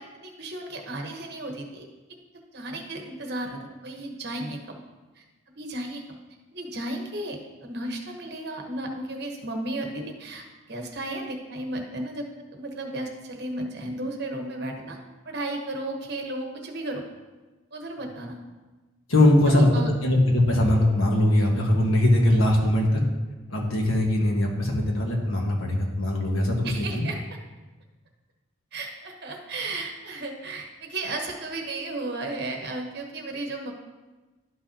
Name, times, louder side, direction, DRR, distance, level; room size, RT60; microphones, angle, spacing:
voice 1, 0.0-1.8 2.5-4.8 5.1-5.2 5.6-6.0 6.5-12.2 12.5-15.0 15.2-17.1 17.7-18.4 19.5-19.9 26.6-27.4 28.7-33.7, right 2 dB, 50° right, 2 dB, 1.2 m, -34 dB
voice 2, 19.1-23.0 23.5-27.1, left 1 dB, 85° left, 0 dB, 1.5 m, -21 dB
12.0 x 5.6 x 2.8 m, 1.2 s
head